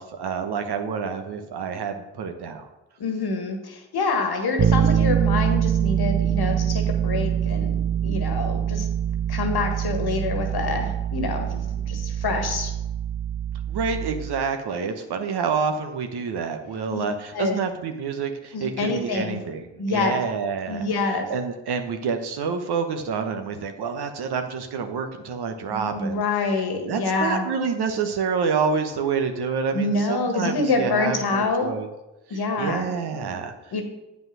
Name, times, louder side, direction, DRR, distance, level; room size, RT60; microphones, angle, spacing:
voice 1, 0.0-2.7 13.7-20.9 21.3-31.9 32.3-33.5, right 5 dB, 65° right, 6 dB, 1.0 m, -28 dB
voice 2, 3.0-7.8 8.0-8.9 9.3-12.7 16.9-17.0 17.3-17.6 18.5-19.4 19.8-20.2 20.7-21.3 25.7-27.5 29.7-31.7 32.3-32.9 33.3-33.4 33.7-33.8, left 3 dB, 60° left, 5 dB, 1.6 m, -26 dB
Bass guitar, 4.6-14.5, right 9 dB, 30° right, 0.4 m, -24 dB
8.0 x 5.3 x 6.1 m, 1.0 s
hypercardioid pair, 45°, 43 cm